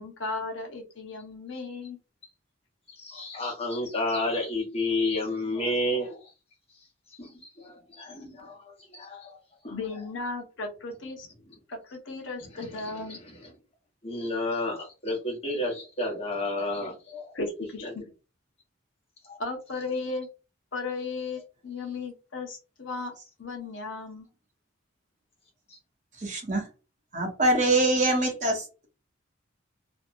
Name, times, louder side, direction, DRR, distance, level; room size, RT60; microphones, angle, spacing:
voice 1, 0.0-2.0 9.7-11.3 11.7-13.2 17.3-18.1 19.4-20.3 20.7-23.1 23.4-24.3, left 3 dB, 70° left, 0.7 m, -35 dB
voice 2, 2.9-6.3 6.7-9.4 9.6-9.8 11.5-11.6 12.5-13.5 14.0-17.3 17.8-17.9 19.2-19.4 25.7-25.8, left 1 dB, 30° left, 1.0 m, -31 dB
voice 3, 26.2-26.7 27.1-28.9, right 2 dB, 35° right, 0.8 m, -24 dB
2.7 x 2.1 x 2.6 m
head